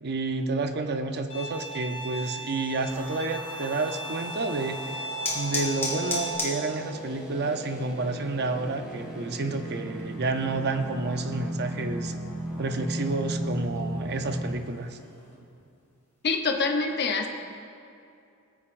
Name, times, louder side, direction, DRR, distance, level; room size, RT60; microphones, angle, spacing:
voice 1, 0.0-5.0 5.3-12.2 12.6-15.0, right 3 dB, 50° right, 7 dB, 0.7 m, -30 dB
Bowed string instrument, 1.3-6.4, right 1 dB, 75° left, 2.3 m, -37 dB
sound 1, 2.9-14.5, right 1 dB, 5° right, 1.8 m, -37 dB
sound 2, 4.2-15.4, left 2 dB, 10° left, 2.4 m, -39 dB
voice 2, 16.2-17.3, left 4 dB, 50° left, 3 dB, 0.8 m, -25 dB
19.5 x 8.6 x 2.6 m, 2.6 s
head